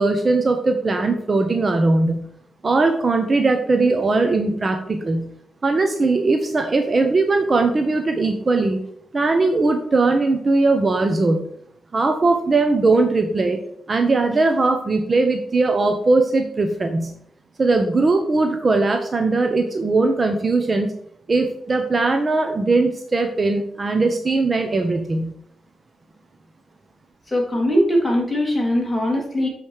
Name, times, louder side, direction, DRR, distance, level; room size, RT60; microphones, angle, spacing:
voice 1, 0.0-2.3 2.6-5.3 5.6-8.8 9.1-11.4 11.9-13.6 13.9-17.2 17.6-20.9 21.3-25.3, right 3 dB, 35° right, 5 dB, 0.9 m, -19 dB
voice 2, 27.3-29.5, equal, 10° left, -1 dB, 2.9 m, -20 dB
7.6 x 5.1 x 4.8 m, 0.71 s
cardioid pair, 90°, 0 cm